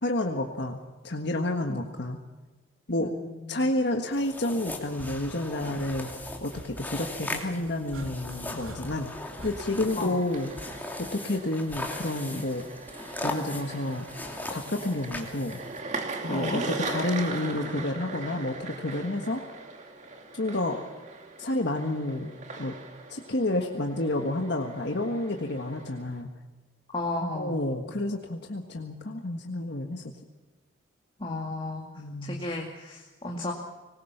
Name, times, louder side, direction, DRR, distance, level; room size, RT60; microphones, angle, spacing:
voice 1, 0.0-2.2 2.9-3.1 3.5-6.1 6.4-9.1 9.4-10.5 11.0-12.6 13.2-14.1 14.5-15.6 16.2-19.4 20.3-20.8 21.4-22.8 23.1-26.3 27.4-30.1 32.0-32.4, left 1 dB, 55° left, 3 dB, 1.7 m, -30 dB
voice 2, 3.0-3.7 10.0-10.2 16.3-16.6 26.9-27.6 31.2-31.9 32.2-33.5, left 2 dB, 25° left, 0 dB, 2.3 m, -33 dB
sound 1, 4.1-15.8, left 2 dB, 10° left, 2.7 m, -39 dB
sound 2, 4.8-10.9 12.3-12.7, equal, 85° right, 3.6 m, -46 dB
sound 3, 9.3-26.2, right 3 dB, 35° right, 2.6 m, -40 dB
24.5 x 20.5 x 6.0 m, 1.2 s
head